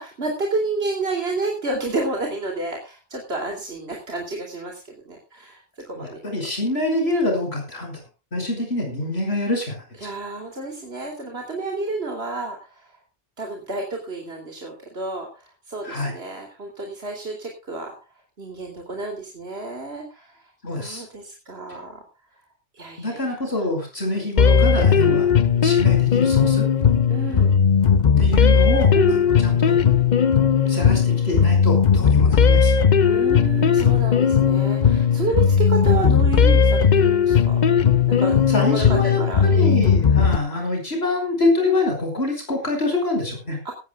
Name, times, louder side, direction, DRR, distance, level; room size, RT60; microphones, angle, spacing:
voice 1, 0.0-4.8 5.1-6.2 10.0-12.9 13.4-17.9 18.4-20.5 20.8-22.0 22.7-23.7 25.0-25.2 27.1-27.5 28.9-29.2 33.0-37.6 38.1-38.4 38.6-39.7 43.6-43.7, right 3 dB, 85° right, 1 dB, 3.2 m, -30 dB
voice 2, 6.0-8.0 8.3-9.8 15.8-16.1 20.6-21.0 23.0-25.3 25.6-26.7 28.2-29.9 30.7-32.7 38.5-43.6, left 2 dB, 90° left, 3 dB, 5.8 m, -25 dB
sound 1, 24.4-40.4, left 7 dB, 50° left, 0.8 m, -17 dB
18.0 x 16.5 x 2.3 m, 0.31 s
omnidirectional pair, 1.0 m